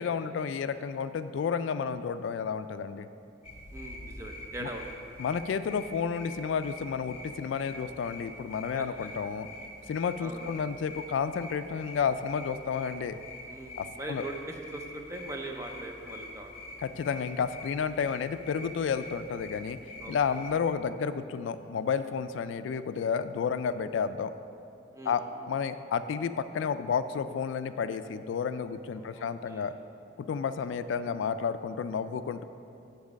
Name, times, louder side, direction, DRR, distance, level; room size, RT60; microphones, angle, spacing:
voice 1, 0.0-3.1 4.6-4.7 5.2-9.5 9.9-13.2 13.8-14.2 16.8-19.8 20.1-24.3 25.1-25.2 25.5-29.7 30.2-32.4, left 6 dB, 75° left, 12 dB, 0.3 m, -31 dB
sound 1, 3.4-20.5, left 1 dB, 30° left, 1.0 m, -45 dB
voice 2, 3.7-4.9 8.7-9.1 10.2-10.6 13.5-16.5 20.0-20.4 24.9-25.2 29.0-29.7, right 2 dB, 15° right, 2 dB, 0.6 m, -41 dB
7.2 x 4.7 x 6.3 m, 2.6 s
head